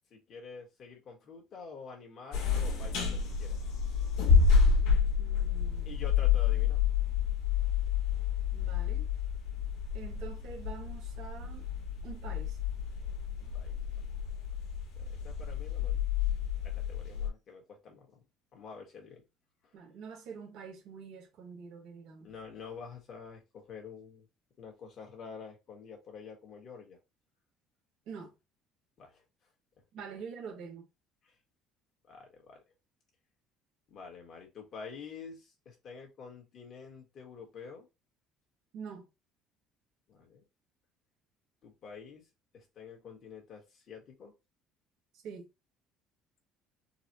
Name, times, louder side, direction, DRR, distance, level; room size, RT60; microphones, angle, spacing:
voice 1, 0.1-3.6 5.8-6.8 13.4-13.8 15.0-16.0 16.6-18.2 18.5-19.2 22.2-24.3 24.6-27.0 29.0-29.2 31.2-31.3 32.0-32.6 33.9-37.9 40.1-40.4 41.6-42.2 42.5-44.3, left 5 dB, 40° left, 1.2 m, -48 dB
sound 1, 2.3-17.3, left 6 dB, 80° left, 1.1 m, -29 dB
voice 2, 5.2-6.0 8.5-9.1 9.9-11.6 12.0-12.6 19.7-22.3 28.1-28.3 29.9-30.9 38.7-39.1 45.2-45.5, right 6 dB, 65° right, 1.2 m, -46 dB
3.9 x 2.1 x 2.8 m
cardioid pair, 155°, 0 cm